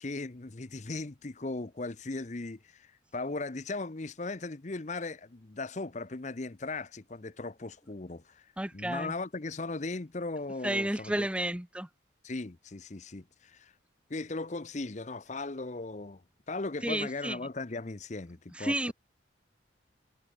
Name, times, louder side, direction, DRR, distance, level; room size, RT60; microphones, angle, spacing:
voice 1, 0.0-11.3 12.2-13.7 14.1-18.9, left 3 dB, 35° left, 0.8 m, -38 dB
voice 2, 8.6-9.1 10.6-11.9 16.8-17.4 18.5-18.9, right 1 dB, 5° right, 0.7 m, -31 dB
head